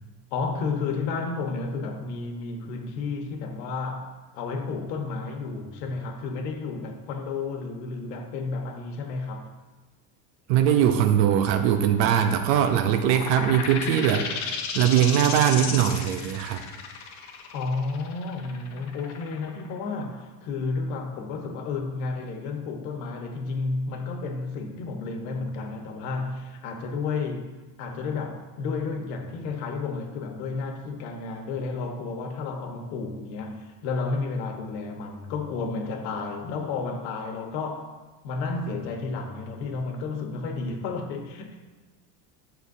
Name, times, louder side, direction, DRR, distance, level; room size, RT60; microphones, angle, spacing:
voice 1, 0.3-4.1 4.3-9.5 17.5-37.9 38.2-41.6, left 4 dB, 90° left, 1.3 m, -32 dB
voice 2, 10.5-16.6, right 9 dB, 80° right, 0.8 m, -21 dB
sound 1, 13.0-20.4, left 6 dB, 35° left, 0.7 m, -34 dB
9.4 x 6.7 x 2.7 m
cardioid pair, 170°, 49 cm